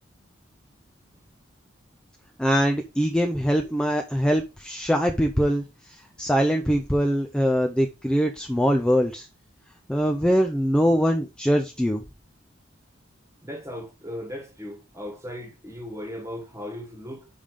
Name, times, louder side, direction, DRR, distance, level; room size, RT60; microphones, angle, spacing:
voice 1, 2.4-9.3 9.9-12.0, equal, 5° left, 0.5 m, -23 dB
voice 2, 13.4-17.3, left 1 dB, 15° right, 1.5 m, -37 dB
5.4 x 5.3 x 5.0 m
head